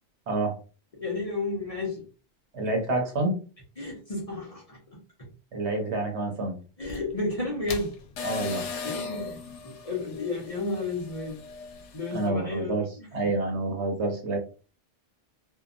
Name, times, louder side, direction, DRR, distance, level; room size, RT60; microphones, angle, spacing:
voice 1, 0.3-0.6 2.5-3.4 5.5-6.6 8.2-8.6 12.1-14.4, right 2 dB, 70° right, 1.2 m, -28 dB
voice 2, 0.9-2.1 3.8-5.3 6.8-8.0 8.8-11.4 11.9-13.1, left 3 dB, 35° left, 0.7 m, -32 dB
sound 1, 6.8-12.3, left 4 dB, 85° left, 0.9 m, -38 dB
2.8 x 2.4 x 2.4 m
omnidirectional pair, 1.2 m